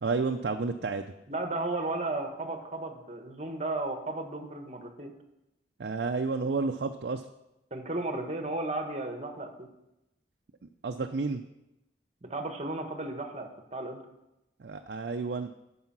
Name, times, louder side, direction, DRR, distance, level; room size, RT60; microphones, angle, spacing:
voice 1, 0.0-1.1 5.8-7.2 10.8-11.4 14.6-15.5, right 4 dB, 65° right, 5 dB, 0.5 m, -31 dB
voice 2, 1.3-5.1 7.7-9.7 12.2-14.0, right 2 dB, 40° right, 5 dB, 1.1 m, -34 dB
9.5 x 5.6 x 6.0 m, 0.90 s
head